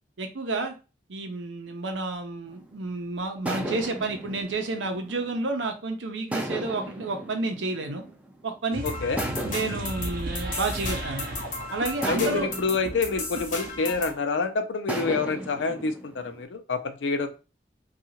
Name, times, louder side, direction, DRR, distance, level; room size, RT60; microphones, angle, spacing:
voice 1, 0.2-0.7 1.1-8.0 8.4-8.8 9.4-11.3 11.7-12.5, right 3 dB, 90° right, 5 dB, 0.6 m, -30 dB
sound 1, 2.5-2.8 3.4-5.7 6.3-8.6 9.2-11.3 12.0-14.3 14.9-16.4, right 1 dB, 10° right, 0.3 m, -36 dB
sound 2, 8.7-14.1, right 1 dB, 50° right, 0.6 m, -36 dB
voice 2, 8.8-9.2 12.1-17.3, left 4 dB, 85° left, 8 dB, 0.5 m, -27 dB
sound 3, 8.9-14.2, left 3 dB, 45° left, 0.7 m, -36 dB
2.8 x 2.4 x 2.8 m, 0.31 s
head